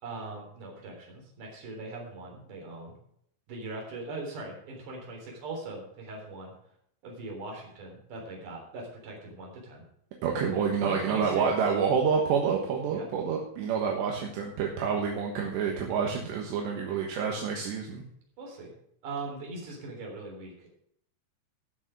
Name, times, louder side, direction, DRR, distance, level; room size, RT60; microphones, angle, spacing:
voice 1, 0.0-2.9 3.5-6.5 7.0-9.8 10.5-11.5 12.9-13.1 18.4-18.7 19.0-20.7, right 3 dB, 45° right, 0 dB, 4.7 m, -40 dB
voice 2, 10.2-18.0, right 6 dB, 75° right, 0 dB, 3.5 m, -28 dB
15.5 x 6.3 x 6.2 m, 0.70 s
omnidirectional pair, 5.2 m